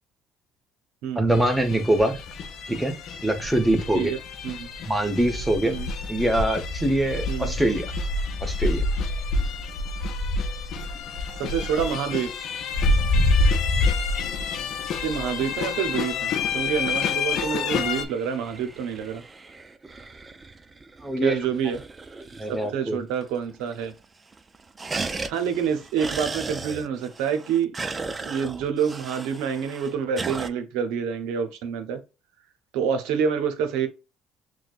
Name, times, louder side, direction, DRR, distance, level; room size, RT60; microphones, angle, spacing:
voice 1, 1.2-2.2 2.7-2.9 3.2-4.1 4.9-5.8 6.1-7.9 8.4-8.8 12.9-13.0 21.0-21.4 22.4-23.0, right 1 dB, 5° right, 1.1 m, -23 dB
sound 1, 1.3-18.1, left 3 dB, 65° left, 0.6 m, -27 dB
voice 2, 11.3-12.3 15.0-19.2 21.2-21.8 22.7-23.9 25.3-32.0 32.7-33.9, right 7 dB, 80° right, 0.8 m, -27 dB
sound 2, 17.6-22.9 23.2-23.3 23.5-24.0 24.3-30.5, right 3 dB, 25° right, 0.5 m, -37 dB
6.1 x 2.2 x 2.5 m
supercardioid pair, 80°, 0 cm